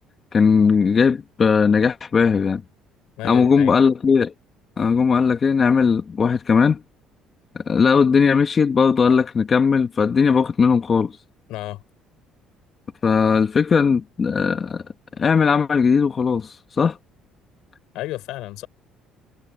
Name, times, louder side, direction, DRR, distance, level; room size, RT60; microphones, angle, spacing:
voice 1, 0.3-2.6 3.2-4.3 4.8-6.8 7.5-11.1 13.0-14.8 15.2-17.0, left 5 dB, 35° left, 1.5 m, -18 dB
voice 2, 3.2-3.7 11.5-11.8 17.9-18.7, left 17 dB, 80° left, 6.5 m, -31 dB
cardioid pair, 115°, 0 cm